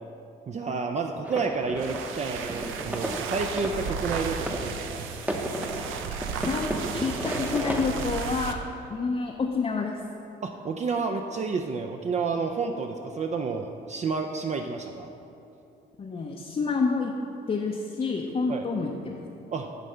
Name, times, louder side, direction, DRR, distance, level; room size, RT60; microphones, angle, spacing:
voice 1, 0.5-5.0 10.4-15.1 18.5-18.7 19.5-19.7, right 4 dB, 35° right, 3 dB, 0.4 m, -30 dB
sound 1, 1.2-7.9, right 1 dB, 5° right, 0.7 m, -34 dB
sound 2, 1.6-8.6, right 6 dB, 85° right, 0.5 m, -34 dB
voice 2, 6.4-8.6 8.9-10.0 16.0-17.1 17.5-19.2, left 4 dB, 30° left, 0 dB, 0.6 m, -28 dB
9.1 x 3.3 x 6.6 m, 2.7 s
cardioid pair, 90°, 20 cm